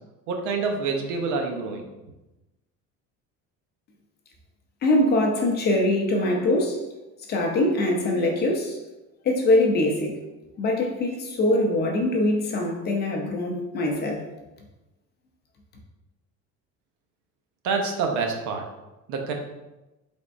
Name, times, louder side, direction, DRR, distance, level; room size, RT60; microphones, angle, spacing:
voice 1, 0.3-1.8 17.6-18.6 19.1-19.3, right 4 dB, 65° right, 3 dB, 0.7 m, -27 dB
voice 2, 4.8-6.8 7.3-8.8 9.2-10.2 10.6-14.2, left 1 dB, 30° left, 1 dB, 0.5 m, -23 dB
4.2 x 3.5 x 2.5 m, 1.0 s
cardioid pair, 170°, 32 cm